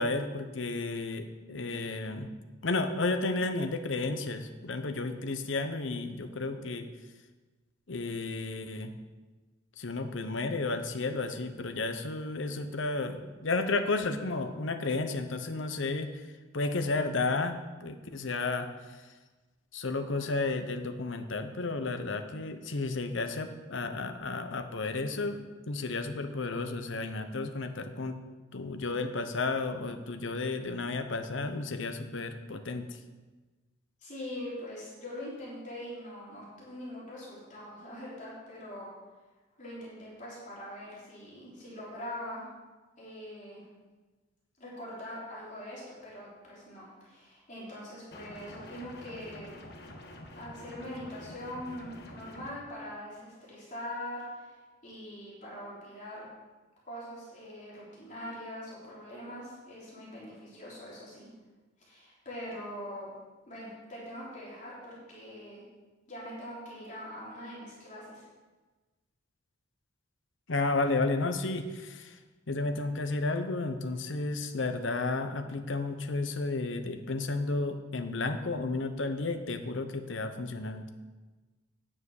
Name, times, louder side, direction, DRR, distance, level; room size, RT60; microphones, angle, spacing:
voice 1, 0.0-2.3 2.6-6.9 7.9-8.9 9.8-16.1 16.5-18.7 19.7-28.1 28.5-32.8 70.5-72.1 72.5-80.9, left 3 dB, 75° left, 7 dB, 0.9 m, -32 dB
voice 2, 34.0-38.9 39.6-42.5 43.0-43.6 44.6-49.6 50.4-54.6 54.8-56.3 56.8-61.3 61.9-63.1 63.5-65.6 66.1-68.2, left 1 dB, 40° left, -7 dB, 3.8 m, -42 dB
sound 1, 48.1-52.5, left 1 dB, 55° left, 1.5 m, -47 dB
9.7 x 7.5 x 6.5 m, 1.3 s
head